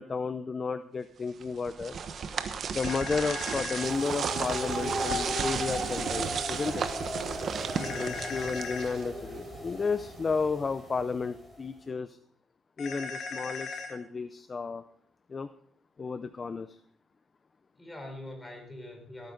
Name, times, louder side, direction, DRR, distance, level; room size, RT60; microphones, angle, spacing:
voice 1, 0.0-2.0 2.7-6.8 7.9-12.2 12.8-14.8 15.3-15.5 16.0-16.8, left 4 dB, 35° left, 12 dB, 0.6 m, -32 dB
sound 1, 1.4-9.2, right 6 dB, 55° right, 1.1 m, -34 dB
sound 2, 2.8-3.9 7.8-8.9 12.8-13.9, left 4 dB, 70° left, 2.2 m, -38 dB
sound 3, 3.8-11.6, equal, 10° right, 5.9 m, -37 dB
voice 2, 7.7-8.4 17.8-19.3, left 1 dB, 10° left, 3 dB, 4.4 m, -44 dB
17.0 x 9.2 x 3.9 m, 0.64 s
cardioid pair, 90°, 0 cm